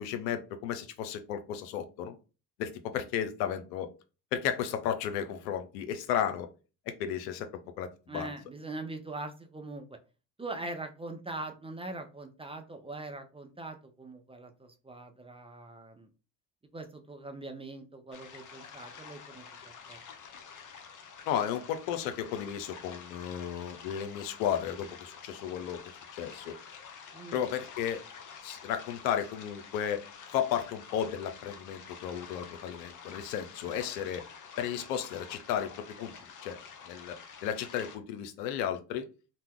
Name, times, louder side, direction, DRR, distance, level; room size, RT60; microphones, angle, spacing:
voice 1, 0.0-2.2 2.6-3.9 4.3-6.5 7.0-7.5 7.8-8.3 21.3-26.6 27.3-28.0 28.4-30.0 30.3-34.2 34.6-36.1 36.4-36.6 36.9-39.1, left 9 dB, 85° left, 9 dB, 0.6 m, -34 dB
voice 2, 8.1-10.0 10.4-16.1 16.7-20.0 27.1-27.4 33.6-33.9, right 2 dB, 10° right, 5 dB, 0.4 m, -42 dB
sound 1, 18.1-38.0, left 6 dB, 40° left, 0.7 m, -49 dB
2.8 x 2.1 x 3.5 m, 0.33 s
hypercardioid pair, 60°, 48 cm